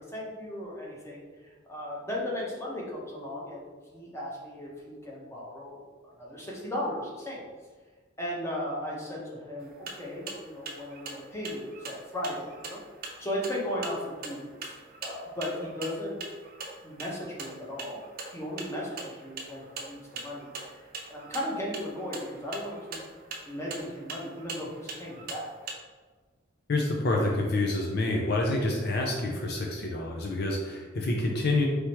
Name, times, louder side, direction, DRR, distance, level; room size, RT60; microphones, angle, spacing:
voice 1, 0.0-5.8 6.2-7.4 8.2-12.8 13.2-14.7 15.0-16.2 16.8-18.0 18.3-20.8 21.1-23.0 23.4-25.5, left 1 dB, 15° left, -4 dB, 1.0 m, -36 dB
sound 1, 9.6-25.7, right 3 dB, 50° right, 0.6 m, -42 dB
voice 2, 26.7-31.7, left 2 dB, 55° left, 0 dB, 0.5 m, -27 dB
4.7 x 3.4 x 3.0 m, 1.4 s
head